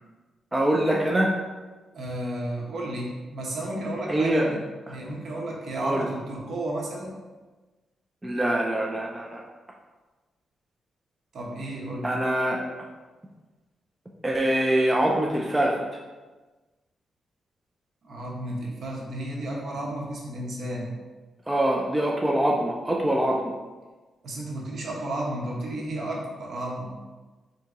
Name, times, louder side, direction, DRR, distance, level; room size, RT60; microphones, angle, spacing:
voice 1, 0.5-1.3 4.1-4.5 5.8-6.1 8.2-9.4 12.0-12.6 14.2-15.8 21.5-23.4, right 1 dB, 10° right, -1 dB, 0.4 m, -24 dB
voice 2, 1.9-4.6 4.9-7.1 11.3-12.1 18.0-20.9 24.2-27.0, right 1 dB, 60° right, -3 dB, 1.0 m, -32 dB
4.0 x 2.7 x 3.6 m, 1.2 s
wide cardioid pair, 135°, 0 cm